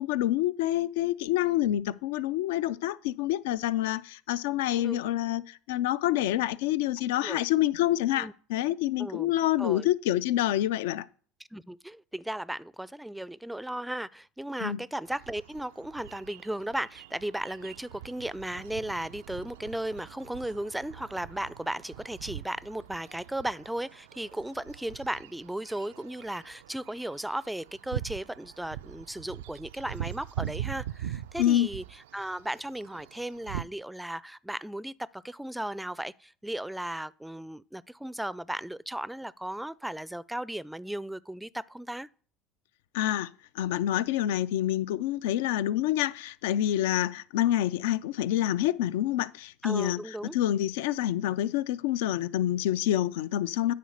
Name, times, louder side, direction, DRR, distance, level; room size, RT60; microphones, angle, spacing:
voice 1, 0.0-11.0 14.6-14.8 31.4-31.7 42.9-43.3 43.6-53.7, left 13 dB, 80° left, 0.4 m, -27 dB
voice 2, 9.0-9.3 9.6-9.9 11.5-42.1 49.6-50.4, right 1 dB, 5° right, 0.4 m, -36 dB
sound 1, 15.1-33.6, right 11 dB, 85° right, 0.3 m, -42 dB
9.4 x 4.1 x 6.5 m
hypercardioid pair, 85°, 0 cm